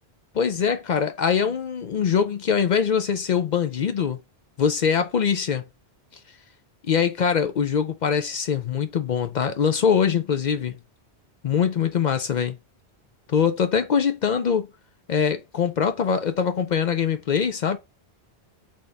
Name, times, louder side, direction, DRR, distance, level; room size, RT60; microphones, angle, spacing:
voice 1, 0.3-4.2 4.6-5.6 6.9-10.7 11.4-12.6 13.3-14.7 15.1-17.8, left 7 dB, 55° left, 0.5 m, -23 dB
4.0 x 3.4 x 3.4 m
omnidirectional pair, 1.2 m